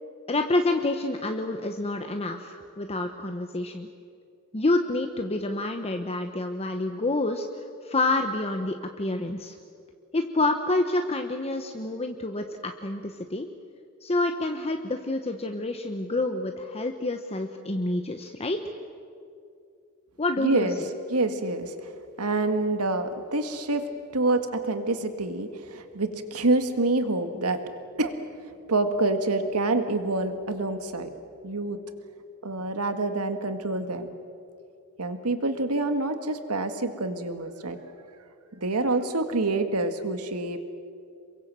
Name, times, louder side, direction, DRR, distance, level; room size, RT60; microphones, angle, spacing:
voice 1, 0.3-3.9 4.5-9.6 10.1-13.5 14.0-18.6 20.2-20.9, left 2 dB, 30° left, 5 dB, 1.1 m, -28 dB
voice 2, 20.4-21.9 22.2-23.9 24.1-27.6 28.0-28.1 28.7-31.1 31.4-31.8 32.4-34.1 35.0-37.8 38.5-40.6, right 2 dB, 90° right, 8 dB, 1.9 m, -27 dB
28.0 x 23.5 x 7.7 m, 2.4 s
head